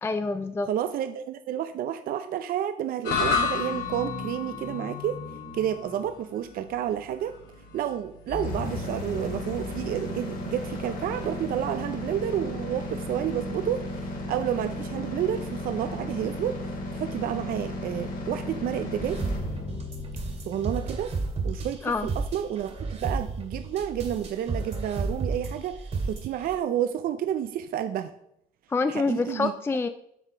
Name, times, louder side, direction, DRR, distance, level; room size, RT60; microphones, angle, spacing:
voice 1, 0.0-0.7 21.8-22.1 28.7-29.9, left 3 dB, 15° left, 10 dB, 0.4 m, -26 dB
voice 2, 0.7-5.2 5.5-7.3 7.7-13.8 14.3-16.6 17.0-19.2 20.5-21.1 21.4-28.1 28.9-29.5, right 10 dB, 60° right, 9 dB, 0.5 m, -30 dB
sound 1, 3.0-11.4, left 5 dB, 80° left, 2.6 m, -33 dB
sound 2, 8.3-22.2, left 1 dB, 55° left, 2.5 m, -35 dB
sound 3, 19.0-26.6, right 3 dB, 40° right, 2.1 m, -32 dB
8.2 x 5.9 x 4.5 m, 0.74 s
cardioid pair, 110°, 17 cm